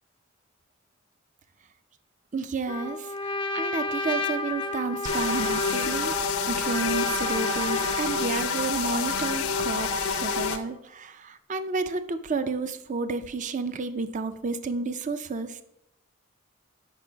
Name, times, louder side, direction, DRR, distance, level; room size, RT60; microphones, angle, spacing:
voice 1, 2.3-3.1 3.5-6.1 6.5-15.6, right 4 dB, 35° right, 11 dB, 0.4 m, -31 dB
Trumpet, 2.7-8.3, left 2 dB, 25° left, 0.5 m, -32 dB
sound 1, 5.0-10.6, left 5 dB, 90° left, 0.7 m, -28 dB
8.0 x 5.8 x 4.5 m, 0.81 s
head